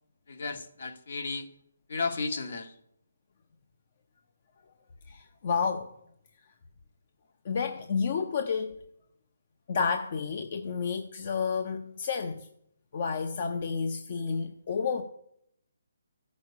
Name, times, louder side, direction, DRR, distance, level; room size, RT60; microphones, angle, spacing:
voice 1, 0.3-1.5 1.9-2.8, left 4 dB, 60° left, 1.4 m, -33 dB
voice 2, 5.1-5.9 7.4-8.7 9.7-12.5 12.9-15.0, left 5 dB, 40° left, 0.7 m, -30 dB
14.0 x 6.4 x 8.4 m
hypercardioid pair, 165°, 0 cm